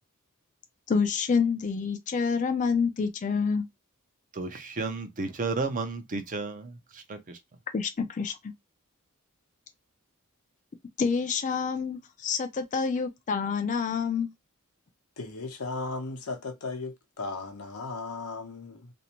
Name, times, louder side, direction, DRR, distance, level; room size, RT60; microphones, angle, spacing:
voice 1, 0.9-3.7 7.7-8.3 11.0-14.3, left 5 dB, 35° left, 0.3 m, -27 dB
voice 2, 4.3-6.7 7.1-7.4, right 3 dB, 35° right, 0.5 m, -32 dB
voice 3, 15.2-18.9, left 3 dB, 85° left, 0.7 m, -36 dB
2.5 x 2.1 x 2.9 m
head